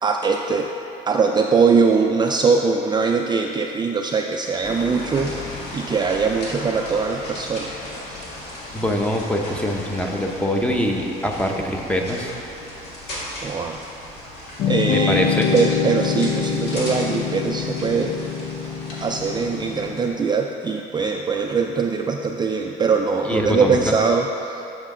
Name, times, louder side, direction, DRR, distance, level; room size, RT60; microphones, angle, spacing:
voice 1, 0.0-0.7 1.1-5.4 5.7-7.7 8.1-8.2 13.4-13.8 14.7-15.2 15.5-18.2 19.0-24.7, right 5 dB, 25° right, 2 dB, 0.4 m, -21 dB
sound 1, 4.6-10.4, left 3 dB, 50° left, 1.1 m, -37 dB
sound 2, 4.7-20.1, left 1 dB, 80° left, 1.7 m, -37 dB
voice 2, 8.7-12.3 14.9-15.5 23.3-23.9, left 1 dB, 5° left, 1 dB, 0.7 m, -23 dB
sound 3, 14.6-20.1, left 7 dB, 65° left, 0.5 m, -25 dB
7.5 x 6.4 x 3.7 m, 2.8 s
cardioid pair, 110°, 17 cm